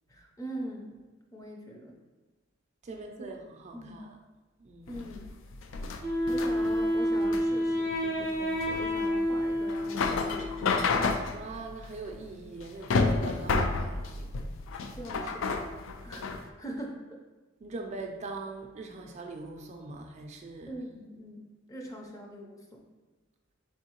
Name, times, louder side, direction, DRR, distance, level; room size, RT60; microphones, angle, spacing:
voice 1, 0.1-1.0 1.3-2.0 3.2-3.3 3.7-4.0 4.9-5.3 6.3-11.1 14.9-15.4 16.0-17.0 20.7-22.8, equal, 15° left, 1 dB, 0.5 m, -42 dB
voice 2, 2.8-4.1 4.6-5.0 11.3-14.3 17.6-20.7, right 3 dB, 35° right, 2 dB, 0.4 m, -42 dB
sound 1, 4.9-16.4, left 3 dB, 70° left, 0.4 m, -31 dB
Wind instrument woodwind instrument, 6.0-10.8, equal, 55° left, 1.5 m, -29 dB
4.3 x 3.5 x 2.9 m, 1.3 s
head